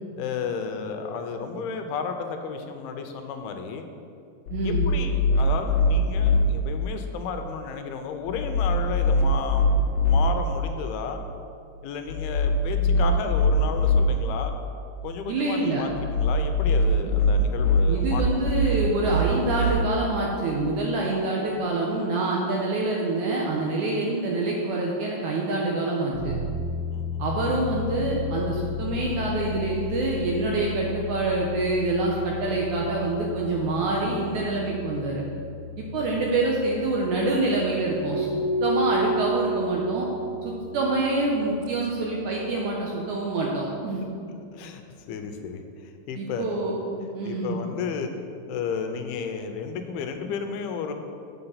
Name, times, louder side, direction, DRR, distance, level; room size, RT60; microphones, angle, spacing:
voice 1, 0.2-3.9 4.6-11.2 11.8-14.5 15.0-18.2 26.9-27.2 35.9-36.2 44.0-44.1 44.5-44.8 45.1-46.5 47.3-48.1 48.5-50.9, left 6 dB, 90° left, 6 dB, 2.6 m, -33 dB
sound 1, 4.5-6.4 8.3-10.2 12.1-14.0 15.9-19.7, left 1 dB, 65° left, 1.8 m, -22 dB
voice 2, 4.5-4.9 12.8-13.0 15.3-15.8 17.9-26.3 27.2-35.2 35.8-38.3 38.6-40.1 40.4-44.0 46.2-47.6, right 2 dB, 75° right, -2 dB, 1.8 m, -26 dB
sound 2, 26.1-42.5, left 5 dB, 25° right, 1.4 m, -36 dB
Keyboard (musical), 38.1-41.0, right 2 dB, 40° right, 1.3 m, -28 dB
7.2 x 6.8 x 5.6 m, 2.4 s
omnidirectional pair, 4.4 m